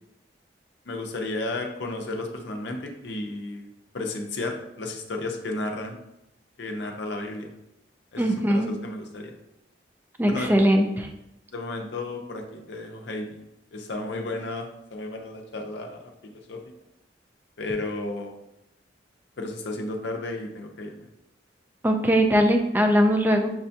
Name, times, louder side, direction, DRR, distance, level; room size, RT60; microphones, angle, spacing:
voice 1, 0.9-3.7 3.9-6.0 6.6-7.5 8.1-9.3 10.3-10.6 11.5-13.4 13.7-16.6 17.6-18.3 19.4-21.1, left 2 dB, 70° left, 3 dB, 0.5 m, -33 dB
voice 2, 8.2-8.7 10.2-11.1 21.8-23.5, equal, 10° right, 4 dB, 0.3 m, -20 dB
5.9 x 2.2 x 2.7 m, 0.87 s
head